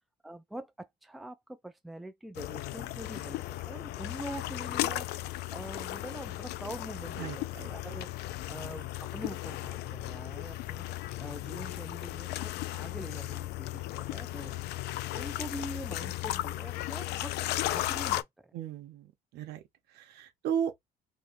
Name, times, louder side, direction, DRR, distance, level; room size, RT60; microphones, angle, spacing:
voice 1, 0.2-5.1 5.5-8.1 8.5-10.8 11.2-14.6 15.1-18.5, right 1 dB, ahead, 0.4 m, -44 dB
sound 1, 2.4-18.2, left 16 dB, 80° left, 0.4 m, -36 dB
voice 2, 7.2-7.7 18.5-19.6 19.9-20.7, right 8 dB, 80° right, 0.8 m, -35 dB
3.2 x 2.8 x 2.5 m
cardioid pair, 110°, 17 cm